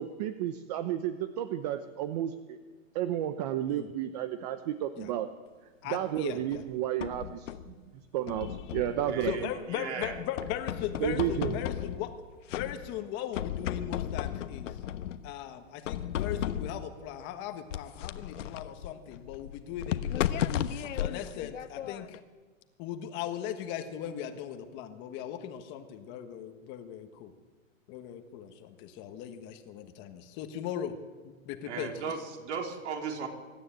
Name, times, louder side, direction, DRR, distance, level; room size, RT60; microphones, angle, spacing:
voice 1, 0.0-2.3 2.9-5.3 5.9-7.4 8.1-9.3 11.0-11.5, right 11 dB, 30° right, 11 dB, 0.8 m, -32 dB
voice 2, 5.8-6.6 9.2-12.1 12.5-14.8 15.2-20.3 20.9-22.2 22.8-27.3 27.9-30.9 31.2-31.9, left 10 dB, 25° left, 7 dB, 1.4 m, -38 dB
sound 1, 6.5-7.7 8.3-9.6 10.0-12.2 12.5-13.1 13.3-15.3 15.8-16.9 17.7-22.2, left 10 dB, 65° left, 1.2 m, -35 dB
voice 3, 9.0-9.4 9.7-10.2 31.7-33.3, right 6 dB, 55° right, 2 dB, 4.0 m, -36 dB
24.5 x 12.5 x 9.2 m, 1.4 s
hypercardioid pair, 160°, 41 cm